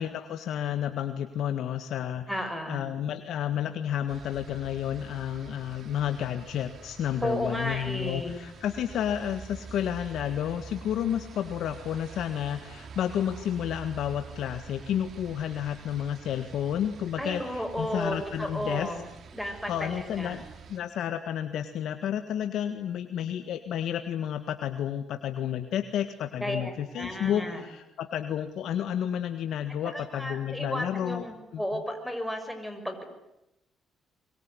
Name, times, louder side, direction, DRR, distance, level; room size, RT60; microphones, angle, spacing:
voice 1, 0.0-18.9 19.7-20.4 20.7-31.2 31.5-31.6, left 10 dB, 75° left, 8 dB, 1.7 m, -31 dB
voice 2, 2.3-2.8 7.2-8.4 17.2-19.1 19.3-20.4 26.4-27.6 29.8-33.0, equal, ahead, 5 dB, 6.1 m, -33 dB
sound 1, 4.1-20.8, right 5 dB, 55° right, 2.7 m, -46 dB
24.5 x 23.5 x 9.9 m, 0.90 s
cardioid pair, 90°, 0 cm